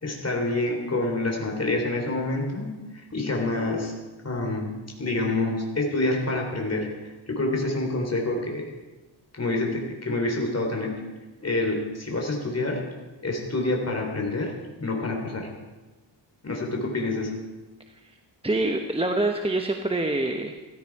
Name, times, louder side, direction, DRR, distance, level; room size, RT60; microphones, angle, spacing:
voice 1, 0.0-3.9 4.2-8.7 9.3-11.0 11.4-12.8 13.2-15.5 16.4-17.3, left 2 dB, 35° left, 1 dB, 3.6 m, -27 dB
voice 2, 18.4-20.5, right 2 dB, 10° right, 4 dB, 1.0 m, -25 dB
16.0 x 15.5 x 4.8 m, 1.2 s
cardioid pair, 90°, 46 cm